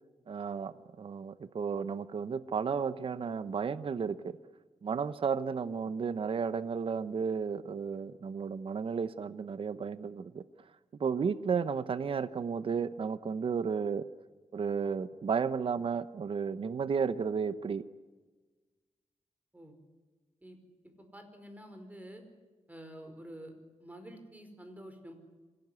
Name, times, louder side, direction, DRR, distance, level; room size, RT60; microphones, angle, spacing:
voice 1, 0.3-4.4 4.8-10.4 11.0-14.0 14.5-17.8, right 6 dB, 50° right, 14 dB, 0.9 m, -33 dB
voice 2, 20.8-22.2 22.7-23.5 23.8-25.1, equal, 15° right, 6 dB, 4.8 m, -48 dB
26.0 x 17.0 x 9.6 m, 1.3 s
wide cardioid pair, 115°, 12 cm